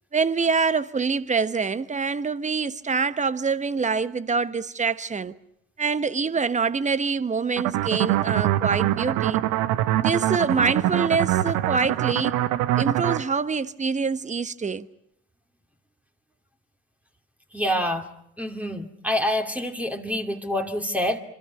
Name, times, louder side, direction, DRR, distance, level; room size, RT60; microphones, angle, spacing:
voice 1, 0.1-5.3 5.8-9.4 10.0-12.3 12.8-14.9, right 5 dB, 20° right, 1.2 m, -25 dB
sound 1, 7.6-13.2, right 14 dB, 65° right, 1.1 m, -24 dB
voice 2, 17.5-18.1 18.4-21.2, left 1 dB, 5° right, 2.6 m, -26 dB
26.5 x 26.0 x 5.9 m
hypercardioid pair, 60°, 34 cm